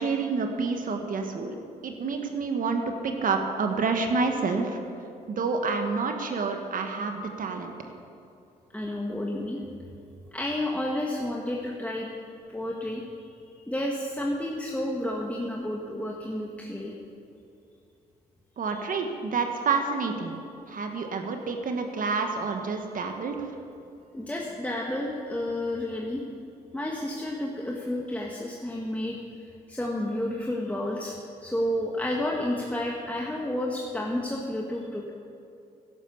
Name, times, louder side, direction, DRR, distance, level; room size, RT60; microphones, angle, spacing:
voice 1, 0.0-1.6 1.8-4.8 5.3-7.7 18.6-20.3 20.7-23.5, right 4 dB, 55° right, 4 dB, 1.5 m, -28 dB
voice 2, 8.7-9.6 10.3-12.1 12.5-13.0 13.7-16.9 24.1-26.2 26.7-29.2 29.7-31.1 31.4-35.1, left 1 dB, 10° left, -2 dB, 1.7 m, -31 dB
11.5 x 11.0 x 7.0 m, 2.6 s
supercardioid pair, 65°, 16 cm